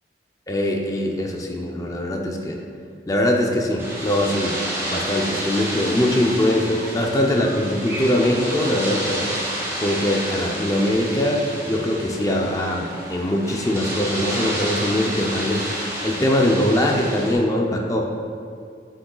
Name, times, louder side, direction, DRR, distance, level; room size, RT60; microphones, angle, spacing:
voice 1, 0.5-2.6 3.1-4.5 4.8-9.2 9.8-12.8 13.1-15.6 16.0-18.0, left 1 dB, 20° left, 0 dB, 0.5 m, -22 dB
sound 1, 3.8-17.3, right 1 dB, 15° right, 1.4 m, -30 dB
7.7 x 6.3 x 2.3 m, 2.3 s
head